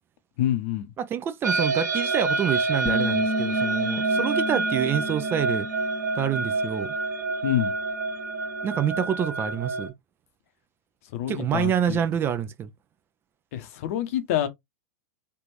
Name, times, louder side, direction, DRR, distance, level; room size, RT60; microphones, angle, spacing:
voice 1, 0.4-0.9 7.4-7.7 11.1-12.0 13.5-14.5, left 12 dB, 50° left, 0.7 m, -27 dB
voice 2, 1.0-5.7 6.2-6.9 8.6-9.9 11.3-12.7, right 9 dB, 25° right, 0.4 m, -27 dB
sound 1, 1.4-9.9, right 3 dB, 75° right, 0.8 m, -27 dB
Bass guitar, 2.9-7.2 7.5-9.1, left 1 dB, 5° right, 1.0 m, -33 dB
3.3 x 2.5 x 3.0 m
figure-of-eight pair, 100°, 9 cm